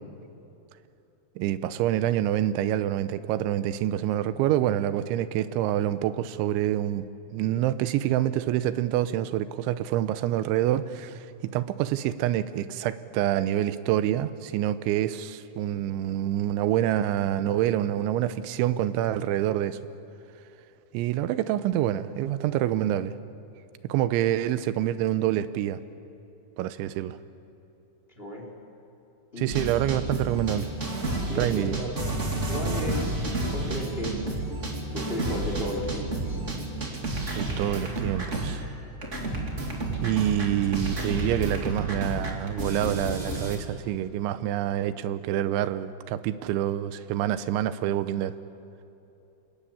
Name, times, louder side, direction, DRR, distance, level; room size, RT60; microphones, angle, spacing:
voice 1, 1.4-7.1 7.3-19.8 20.9-23.2 23.8-25.8 26.6-27.2 29.4-30.7 31.4-31.8 37.3-38.6 40.0-48.3, right 12 dB, 90° right, 13 dB, 3.2 m, -27 dB
voice 2, 28.2-28.5 29.3-29.5 31.3-31.9 32.5-34.2 34.9-36.4, equal, 15° left, 1 dB, 2.8 m, -34 dB
sound 1, 29.5-38.8 39.0-43.6, right 2 dB, 25° right, 1.7 m, -31 dB
28.5 x 19.0 x 8.6 m, 2.9 s
omnidirectional pair, 5.3 m